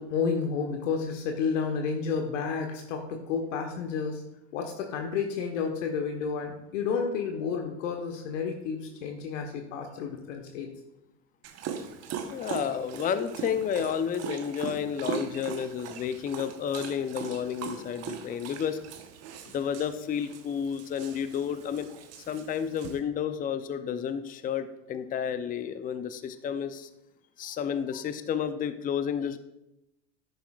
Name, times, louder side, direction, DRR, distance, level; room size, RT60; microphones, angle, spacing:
voice 1, 0.0-4.2 4.5-10.7, left 5 dB, 75° left, 3 dB, 1.3 m, -31 dB
Dog, 11.4-23.0, right 7 dB, 40° right, 1.1 m, -40 dB
voice 2, 12.3-18.8 19.5-21.9 22.3-26.9 27.4-29.4, left 8 dB, 20° left, 11 dB, 0.6 m, -31 dB
10.5 x 9.2 x 2.4 m, 0.87 s
hypercardioid pair, 100°, 38 cm